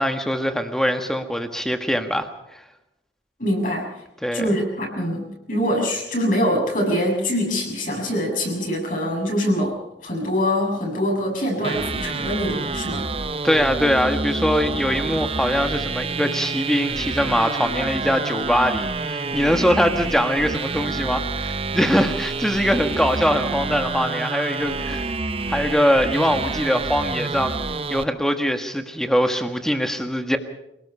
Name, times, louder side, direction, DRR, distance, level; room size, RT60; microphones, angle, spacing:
voice 1, 0.0-2.6 4.2-4.6 13.4-25.1 25.5-27.6 27.9-30.4, equal, 5° left, 6 dB, 1.5 m, -22 dB
voice 2, 3.4-3.9 4.3-9.8 10.0-13.1, equal, 45° left, -1 dB, 7.2 m, -24 dB
sound 1, 11.6-28.0, right 3 dB, 30° right, 0.8 m, -28 dB
26.5 x 18.5 x 5.6 m, 0.89 s
head